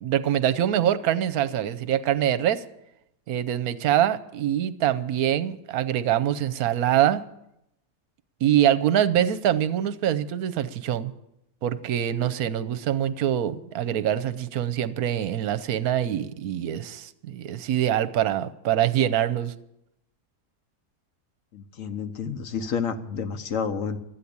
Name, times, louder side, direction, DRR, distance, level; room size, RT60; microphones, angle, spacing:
voice 1, 0.0-2.6 3.3-7.2 8.4-11.1 11.6-19.5, right 11 dB, 70° right, 13 dB, 1.2 m, -24 dB
voice 2, 21.5-24.0, left 6 dB, 60° left, 8 dB, 1.3 m, -30 dB
13.0 x 9.5 x 8.6 m, 0.83 s
omnidirectional pair, 1.7 m